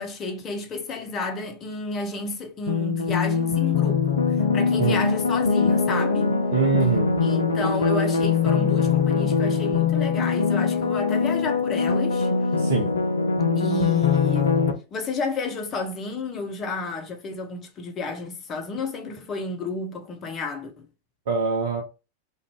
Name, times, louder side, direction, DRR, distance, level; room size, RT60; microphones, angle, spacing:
voice 1, 0.0-6.4 7.2-12.3 13.6-14.6 14.9-20.8, left 3 dB, 30° left, 0.6 m, -31 dB
sound 1, 2.7-14.7, left 5 dB, 70° left, 0.4 m, -22 dB
voice 2, 6.5-7.1 12.6-12.9 21.3-21.8, right 5 dB, 55° right, 0.6 m, -23 dB
2.5 x 2.2 x 3.1 m
figure-of-eight pair, 90°, 0 cm